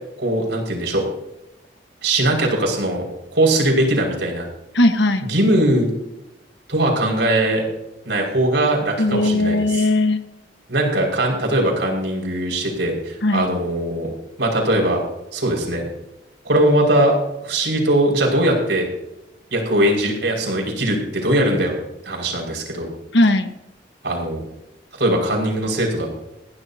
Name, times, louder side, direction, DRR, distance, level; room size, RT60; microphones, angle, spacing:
voice 1, 0.2-1.0 2.0-3.0 3.3-4.5 5.2-5.9 6.7-7.7 8.1-9.8 10.7-14.1 14.4-15.0 15.3-15.9 16.4-17.2 17.4-18.8 19.5-21.8 22.0-22.9 24.0-24.5 25.0-26.1, right 1 dB, 80° right, -1 dB, 5.7 m, -20 dB
voice 2, 4.7-5.3 9.0-10.2 13.2-13.5 23.1-23.5, left 1 dB, 80° left, 7 dB, 1.4 m, -18 dB
21.5 x 15.5 x 2.9 m, 0.88 s
head